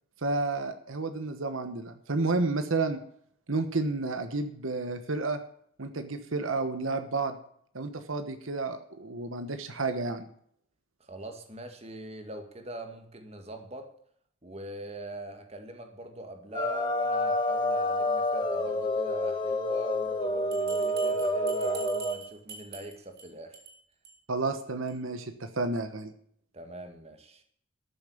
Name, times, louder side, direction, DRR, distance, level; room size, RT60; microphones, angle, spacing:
voice 1, 0.2-3.0 3.5-5.4 5.8-7.4 7.7-10.3 24.3-26.1, right 3 dB, 80° right, 9 dB, 1.2 m, -31 dB
voice 2, 11.0-13.9 14.4-23.6 26.5-27.4, right 1 dB, 30° right, 6 dB, 1.9 m, -43 dB
sound 1, 16.5-22.2, left 1 dB, 20° left, 1.5 m, -28 dB
Bell, 20.5-23.2 23.5-23.7 24.0-24.1 24.5-24.6 24.9-25.0, right 4 dB, 50° right, 3.9 m, -44 dB
13.0 x 7.4 x 8.6 m, 0.66 s
head